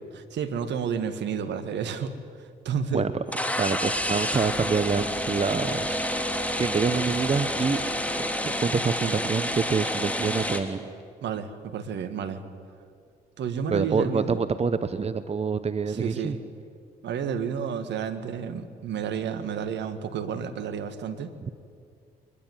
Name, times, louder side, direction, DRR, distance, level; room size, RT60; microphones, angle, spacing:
voice 1, 0.3-2.1 2.7-3.1 11.2-12.4 13.4-14.4 15.9-16.4 17.0-21.3, right 7 dB, 60° right, 8 dB, 1.9 m, -31 dB
sound 1, 3.3-10.6, left 1 dB, 5° left, 3.1 m, -29 dB
voice 2, 3.6-6.1 6.6-7.8 8.2-10.9 13.7-16.4, right 5 dB, 30° right, 12 dB, 1.1 m, -26 dB
23.0 x 20.0 x 9.6 m, 2.2 s
hypercardioid pair, 45°, 20 cm